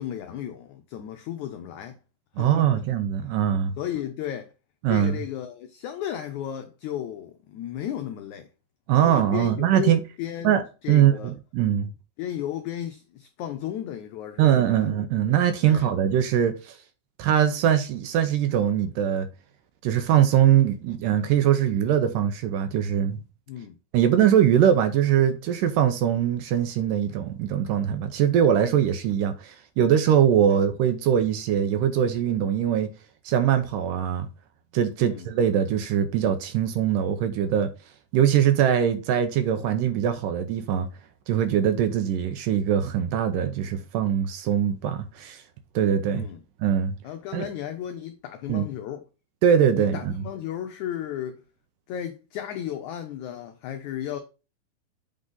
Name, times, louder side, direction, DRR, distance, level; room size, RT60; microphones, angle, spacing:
voice 1, 0.0-2.0 2.3-2.8 3.2-3.3 3.8-4.5 4.9-8.5 9.0-10.5 10.8-11.3 12.2-14.9 15.6-15.9 23.5-23.8 30.5-30.6 35.0-35.3 46.1-46.4 47.0-49.0 49.7-51.4 51.9-54.2, left 10 dB, 90° left, 1.6 m, -34 dB
voice 2, 2.4-3.7 4.8-5.2 8.9-10.0 10.4-10.6 10.9-11.1 11.5-11.9 14.4-16.8 17.2-19.3 19.8-23.2 23.9-32.9 33.3-34.3 34.7-37.7 38.1-40.9 41.3-45.4 45.8-46.3 46.6-46.9 47.3-47.5 48.5-48.7 49.4-50.1, right 9 dB, 75° right, 2.1 m, -22 dB
8.1 x 3.9 x 3.8 m
omnidirectional pair, 4.2 m